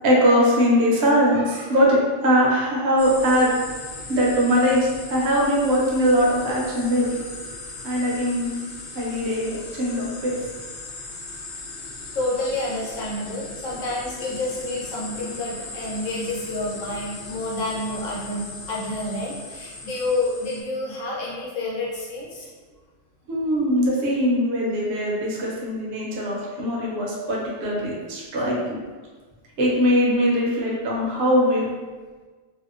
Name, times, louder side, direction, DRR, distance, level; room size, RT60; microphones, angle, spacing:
voice 1, 0.0-3.5 4.1-7.1 7.8-8.5 8.9-10.4 23.3-28.8 29.6-31.7, equal, 60° right, -4 dB, 0.8 m, -21 dB
sound 1, 3.0-20.6, left 3 dB, 60° left, 0.6 m, -38 dB
voice 2, 12.1-22.5, left 2 dB, 85° left, -5 dB, 1.1 m, -29 dB
2.7 x 2.1 x 2.4 m, 1.4 s
omnidirectional pair, 1.3 m